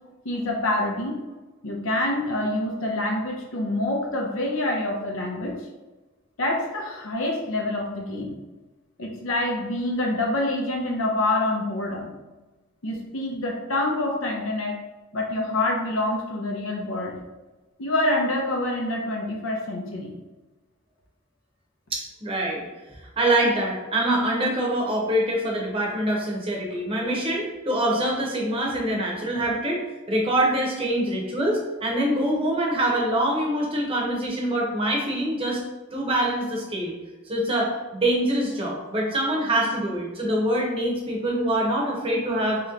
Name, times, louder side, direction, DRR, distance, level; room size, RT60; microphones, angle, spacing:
voice 1, 0.2-1.1 1.6-5.6 6.4-8.4 9.0-12.1 12.8-14.8 15.1-17.2 17.8-20.1, left 1 dB, 70° left, 0 dB, 0.7 m, -26 dB
voice 2, 21.9-22.6 23.2-29.8 30.1-35.6 35.9-36.9 37.3-42.6, right 1 dB, 25° right, -2 dB, 0.9 m, -24 dB
3.3 x 2.9 x 3.7 m, 1.1 s
head